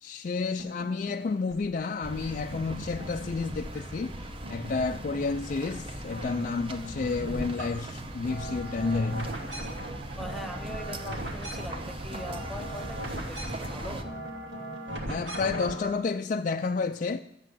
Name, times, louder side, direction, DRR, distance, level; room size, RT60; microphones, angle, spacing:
voice 1, 0.0-4.2 4.5-9.3 15.1-17.2, left 4 dB, 45° left, 0.4 m, -30 dB
sound 1, 0.6-2.1 2.5-4.1 4.4-5.7 6.0-15.9, right 1 dB, 90° right, 2.6 m, -40 dB
sound 2, 2.0-14.0, right 1 dB, 30° right, 0.9 m, -39 dB
sound 3, 8.8-14.5, right 5 dB, 60° right, 0.6 m, -51 dB
voice 2, 10.2-14.1, equal, ahead, 0.6 m, -42 dB
12.5 x 8.3 x 7.7 m
head